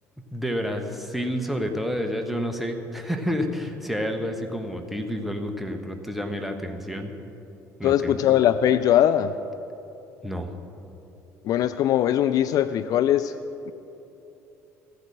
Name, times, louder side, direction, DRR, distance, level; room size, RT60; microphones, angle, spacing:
voice 1, 0.3-7.1 7.8-8.4 10.2-10.5, equal, ahead, 4 dB, 1.3 m, -29 dB
voice 2, 7.8-9.3 11.4-13.3 13.7-13.8, left 11 dB, 45° left, 12 dB, 0.3 m, -21 dB
15.0 x 8.0 x 6.3 m, 2.9 s
figure-of-eight pair, 55°, 8 cm